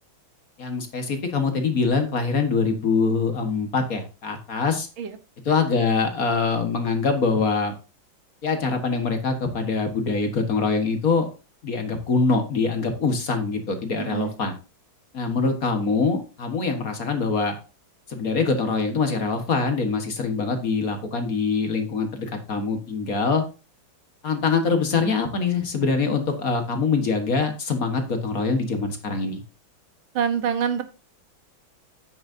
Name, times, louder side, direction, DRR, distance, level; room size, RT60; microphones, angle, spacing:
voice 1, 0.6-4.9 5.5-7.7 8.4-11.3 11.6-14.5 15.1-17.5 18.1-23.4 24.2-29.4, left 4 dB, 45° left, 6 dB, 1.8 m, -24 dB
voice 2, 14.0-14.3 30.1-30.8, right 7 dB, 85° right, 10 dB, 1.9 m, -25 dB
9.8 x 9.4 x 2.7 m, 0.31 s
omnidirectional pair, 2.1 m